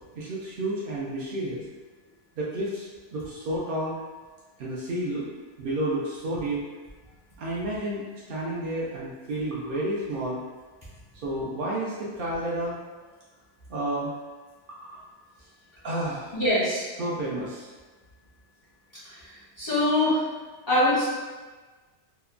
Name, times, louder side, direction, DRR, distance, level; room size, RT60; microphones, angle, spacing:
voice 1, 0.2-1.6 2.4-4.0 4.6-5.3 5.6-6.6 7.4-10.4 11.2-13.0 13.7-14.1 14.9-15.0 15.8-16.3 17.0-17.7, right 1 dB, 60° right, -6 dB, 0.6 m, -31 dB
voice 2, 16.3-16.8 19.6-20.2 20.7-21.0, left 1 dB, 30° left, -10 dB, 0.5 m, -22 dB
2.9 x 2.1 x 2.3 m, 1.3 s
omnidirectional pair, 1.2 m